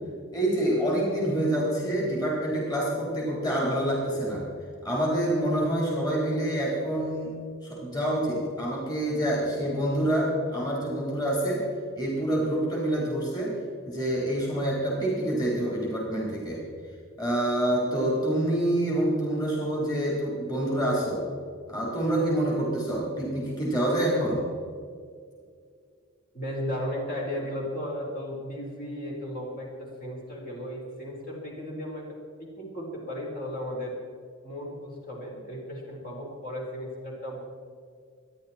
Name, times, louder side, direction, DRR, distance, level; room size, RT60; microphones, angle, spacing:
voice 1, 0.3-4.5 4.8-7.3 7.6-11.6 12.0-13.5 13.9-16.6 17.2-21.2 21.7-24.4, right 1 dB, 20° left, -4 dB, 4.1 m, -27 dB
voice 2, 26.3-32.0 32.6-33.9 34.4-37.4, equal, 45° left, -3 dB, 4.6 m, -35 dB
26.0 x 11.0 x 4.5 m, 2.1 s
head